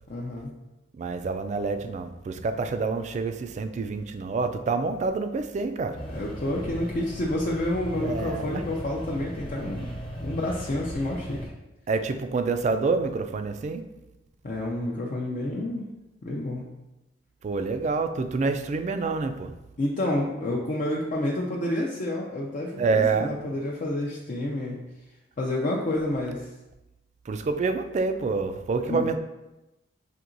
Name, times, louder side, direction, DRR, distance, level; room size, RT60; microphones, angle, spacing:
voice 1, 0.1-0.5 6.1-9.9 10.2-11.4 14.4-15.9 16.2-16.6 19.8-24.8 25.4-26.4 28.8-29.0, left 1 dB, 45° left, -3 dB, 0.5 m, -29 dB
voice 2, 0.9-6.0 8.0-8.6 11.9-13.8 17.4-19.5 22.8-23.3 27.3-29.2, right 4 dB, 40° right, 9 dB, 0.3 m, -27 dB
sound 1, 5.9-11.5, equal, 30° left, 0.8 m, -37 dB
6.0 x 2.8 x 2.6 m, 0.98 s
head